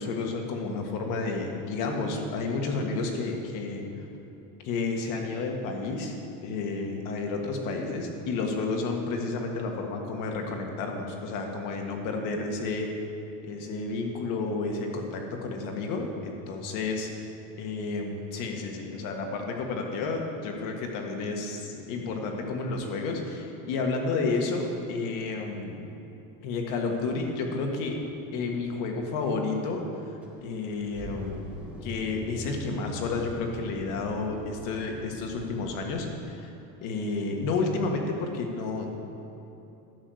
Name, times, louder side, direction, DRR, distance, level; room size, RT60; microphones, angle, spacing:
voice 1, 0.0-3.8 4.6-6.1 6.4-12.9 13.4-17.1 17.6-25.8 26.4-28.0 28.3-29.8 30.4-31.4 31.8-36.5 36.8-38.9, left 3 dB, 60° left, 2 dB, 1.7 m, -31 dB
sound 1, 30.2-35.8, equal, 5° right, 1.3 m, -43 dB
11.0 x 6.1 x 7.9 m, 2.8 s
cardioid pair, 160°, 36 cm